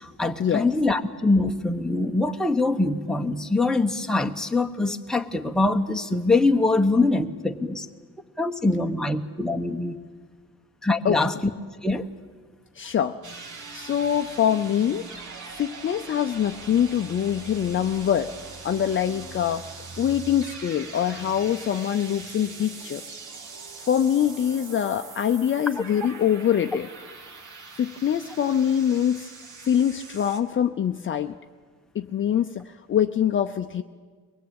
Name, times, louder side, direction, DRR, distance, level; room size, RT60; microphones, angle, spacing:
voice 1, 0.0-7.9 8.4-10.0 10.8-11.3 11.8-12.1, left 2 dB, ahead, 4 dB, 1.0 m, -23 dB
voice 2, 12.8-13.2 13.7-15.1 15.5-18.3 18.6-19.7 20.0-23.0 23.9-26.9 27.8-29.3 29.6-31.3 31.9-33.8, left 9 dB, 35° left, 6 dB, 0.7 m, -24 dB
sound 1, 13.2-30.4, right 4 dB, 60° right, 2.8 m, -42 dB
23.5 x 19.5 x 8.9 m, 1.5 s
cardioid pair, 145°, 34 cm